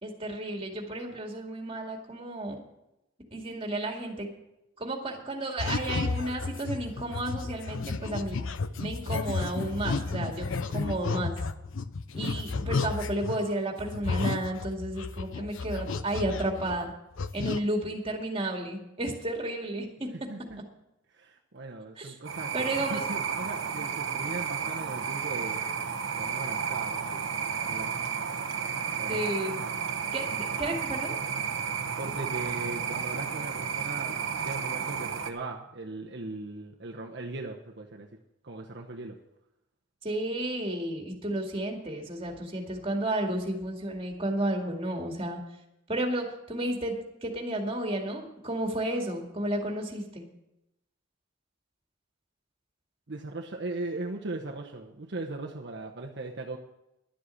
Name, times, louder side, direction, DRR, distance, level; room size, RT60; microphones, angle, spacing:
voice 1, 0.0-2.6 3.3-4.3 4.8-8.4 8.8-11.3 12.1-16.9 17.3-20.1 22.0-22.2 22.5-23.0 29.1-29.6 30.1-31.2 40.0-45.4 45.9-50.2, right 1 dB, 30° right, 2 dB, 2.2 m, -32 dB
sound 1, 5.6-13.5 13.8-16.9 17.2-17.6, left 4 dB, 90° left, 0.6 m, -32 dB
voice 2, 20.3-20.6 21.1-25.6 26.2-27.2 27.6-28.0 29.0-29.2 32.0-38.1 38.4-39.2 53.1-56.6, right 2 dB, 60° right, 0 dB, 1.0 m, -38 dB
sound 2, 22.3-35.3, right 6 dB, 85° right, 1.0 m, -32 dB
11.5 x 7.8 x 8.3 m, 0.88 s
head